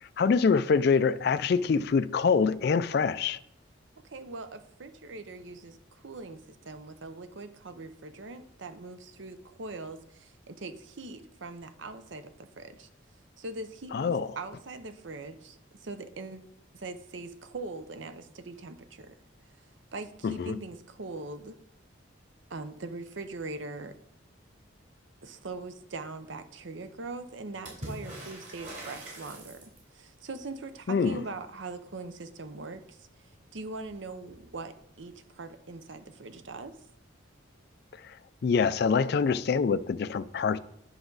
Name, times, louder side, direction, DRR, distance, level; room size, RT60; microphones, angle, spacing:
voice 1, 0.2-3.4 13.9-14.3 20.2-20.6 30.9-31.2 38.0-38.2 38.4-40.6, left 5 dB, 55° left, 0.3 m, -25 dB
voice 2, 4.0-12.9 13.4-16.5 16.7-19.2 19.9-21.6 22.5-23.9 25.2-36.8, right 3 dB, 70° right, 0.7 m, -41 dB
Water / Splash splatter, 27.6-30.0 33.3-33.4 33.7-34.4 35.5-35.6, right 1 dB, 40° right, 3.3 m, -43 dB
9.9 x 5.9 x 3.9 m
head